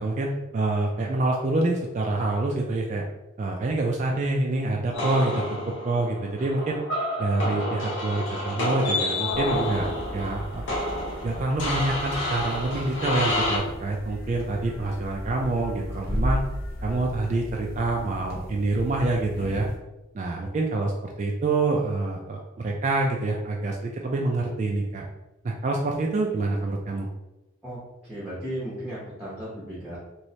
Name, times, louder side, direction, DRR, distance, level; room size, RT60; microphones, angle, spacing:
voice 1, 0.0-3.0 3.4-6.8 7.2-10.6 11.2-16.4 16.8-19.7 20.1-25.0 25.4-27.1, right 2 dB, 40° right, 0 dB, 0.3 m, -26 dB
sound 1, 4.9-13.6, left 1 dB, 90° left, 1.0 m, -29 dB
sound 2, 9.3-19.8, equal, 50° left, 0.6 m, -35 dB
voice 2, 27.6-30.0, equal, 5° right, -8 dB, 0.7 m, -35 dB
3.1 x 3.0 x 2.7 m, 1.0 s
head